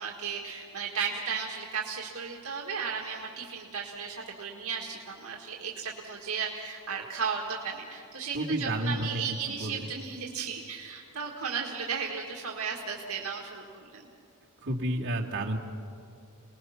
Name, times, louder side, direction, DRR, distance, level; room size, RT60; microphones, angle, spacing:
voice 1, 0.0-14.1, right 6 dB, 75° right, -1 dB, 1.9 m, -35 dB
voice 2, 8.3-9.8 14.6-15.6, right 1 dB, 60° right, -3 dB, 2.4 m, -31 dB
28.5 x 20.0 x 5.9 m, 2.5 s
head